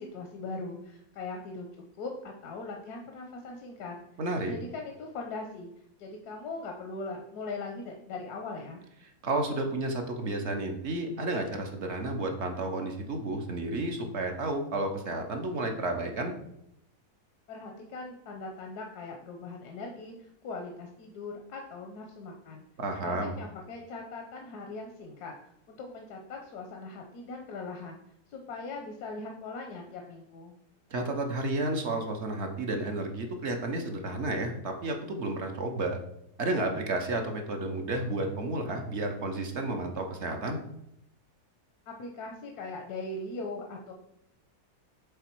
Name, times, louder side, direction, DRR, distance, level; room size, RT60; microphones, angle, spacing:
voice 1, 0.0-1.7 2.0-4.0 4.5-5.7 6.0-8.8 17.5-22.6 23.0-25.3 25.7-28.0 28.3-30.5 41.9-43.9, left 3 dB, 85° left, 2 dB, 1.3 m, -40 dB
voice 2, 4.2-4.5 9.2-16.3 22.8-23.3 30.9-36.0 36.4-40.6, right 2 dB, 55° right, 3 dB, 1.0 m, -31 dB
6.9 x 3.8 x 4.5 m, 0.78 s
omnidirectional pair, 1.6 m